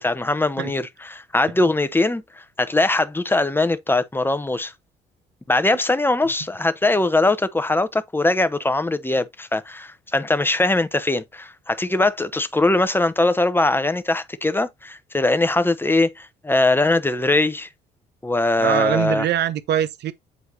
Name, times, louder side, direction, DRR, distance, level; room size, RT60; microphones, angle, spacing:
voice 1, 0.0-4.7 5.5-17.7 18.2-19.2, left 2 dB, 10° left, 0.9 m, -21 dB
voice 2, 18.6-20.1, right 10 dB, 55° right, 0.8 m, -22 dB
8.4 x 4.5 x 2.7 m
hypercardioid pair, 45°, 21 cm